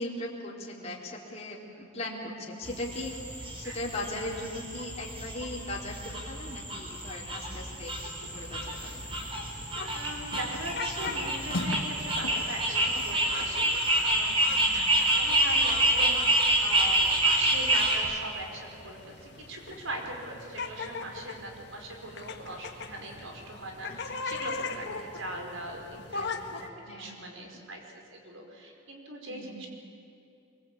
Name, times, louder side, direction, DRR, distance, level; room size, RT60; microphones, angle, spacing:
voice 1, 0.0-3.1 3.6-9.1 14.5-14.8 23.9-24.3 24.7-24.9 26.2-26.3 26.8-27.5 29.3-29.6, left 1 dB, 35° left, -4 dB, 3.7 m, -39 dB
sound 1, 2.6-18.0, right 1 dB, 30° right, 4.6 m, -28 dB
sound 2, 8.2-26.7, left 4 dB, 60° left, 1.8 m, -41 dB
sound 3, 9.7-10.0 10.3-10.7 11.1-12.0 12.2-13.6, left 1 dB, 85° left, 3.1 m, -37 dB
voice 2, 9.8-13.7 14.0-14.4 14.7-26.3 26.6-27.8 28.1-29.7, right 1 dB, 85° right, 2 dB, 4.8 m, -41 dB
24.5 x 23.0 x 8.6 m, 2.6 s
head